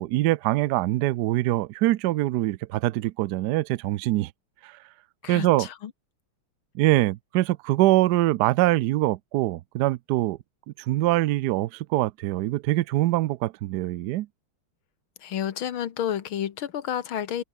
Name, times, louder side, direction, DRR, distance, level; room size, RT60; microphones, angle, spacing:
voice 1, 0.0-4.3 4.6-4.8 5.3-5.7 6.7-10.4 10.7-14.3, right 16 dB, 85° right, 0.9 m, -24 dB
voice 2, 5.2-5.9 15.2-17.4, left 10 dB, 70° left, 2.1 m, -30 dB
omnidirectional pair, 2.4 m